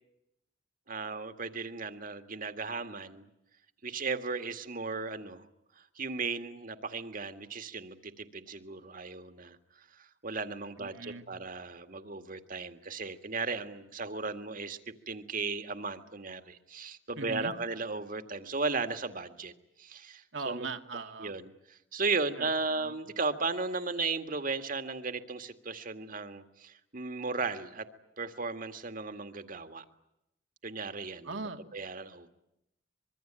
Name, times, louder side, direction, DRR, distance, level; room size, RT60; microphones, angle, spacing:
voice 1, 0.9-3.3 3.8-5.4 6.0-9.6 10.0-14.8 15.1-19.5 19.8-20.7 21.2-27.9 28.2-29.8 30.6-31.4 31.7-32.3, right 4 dB, 50° right, 8 dB, 2.0 m, -36 dB
voice 2, 10.8-11.3 17.2-17.5 20.3-21.3 22.4-23.0 31.2-31.6, right 3 dB, 80° right, 6 dB, 2.2 m, -40 dB
25.5 x 23.0 x 9.0 m, 0.84 s
head